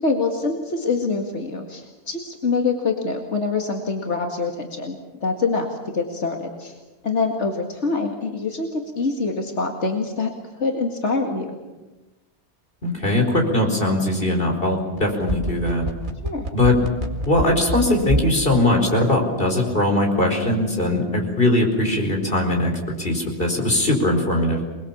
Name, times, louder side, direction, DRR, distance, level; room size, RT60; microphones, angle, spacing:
voice 1, 0.0-6.7 7.0-11.6 16.2-16.4, left 4 dB, 90° left, 2 dB, 2.3 m, -25 dB
voice 2, 12.8-15.9 16.5-16.8 17.2-22.7 23.0-24.6, left 1 dB, 55° left, 2 dB, 5.0 m, -20 dB
sound 1, 15.0-18.4 18.7-18.8, right 1 dB, 45° right, 2.3 m, -25 dB
28.0 x 21.0 x 7.3 m, 1.1 s
omnidirectional pair, 1.2 m